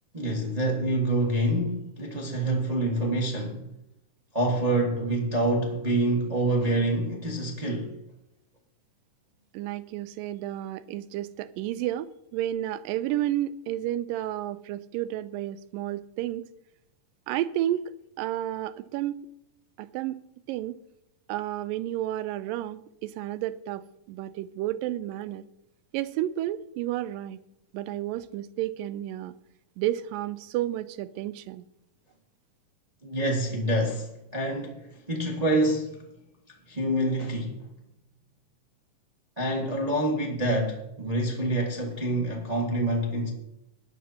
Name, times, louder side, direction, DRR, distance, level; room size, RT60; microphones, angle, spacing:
voice 1, 0.1-3.7 4.3-8.0 33.0-36.1 36.5-37.7 39.4-43.3, right 1 dB, 55° right, 0.4 m, -27 dB
voice 2, 9.5-16.5 17.3-19.2 19.8-20.2 20.5-20.7 21.3-25.4 25.9-27.4 27.7-29.3 29.8-31.7, right 13 dB, 90° right, 2.3 m, -31 dB
17.5 x 11.0 x 2.9 m
omnidirectional pair, 3.9 m